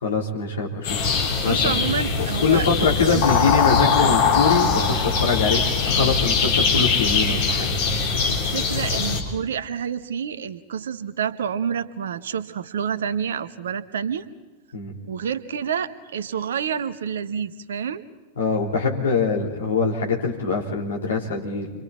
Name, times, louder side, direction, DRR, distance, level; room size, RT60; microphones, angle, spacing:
voice 1, 0.0-1.8 2.4-7.7 14.7-14.9 18.4-21.7, left 4 dB, 65° left, 0 dB, 4.0 m, -23 dB
sound 1, 0.8-9.2, left 5 dB, 50° left, 4.2 m, -21 dB
voice 2, 1.4-2.7 3.0-3.3 8.3-14.2 15.0-18.0, right 7 dB, 65° right, 13 dB, 1.1 m, -28 dB
29.5 x 25.5 x 4.4 m, 1.2 s
figure-of-eight pair, 90°, 0 cm